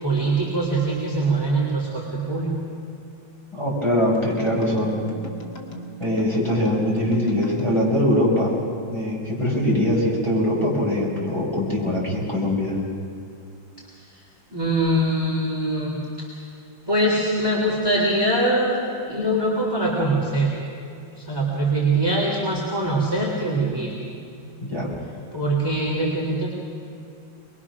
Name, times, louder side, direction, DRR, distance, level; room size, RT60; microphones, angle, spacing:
voice 1, 0.0-2.6 14.5-16.3 16.9-18.8 19.1-20.6 21.2-23.9 25.3-26.5, right 1 dB, 10° right, -4 dB, 3.2 m, -23 dB
voice 2, 3.5-5.0 6.0-8.5 8.9-12.8 24.6-24.9, left 1 dB, 15° left, -5 dB, 5.9 m, -22 dB
sound 1, 4.0-8.8, right 1 dB, 55° left, 2.5 m, -39 dB
24.5 x 21.5 x 6.2 m, 2.5 s
omnidirectional pair, 2.1 m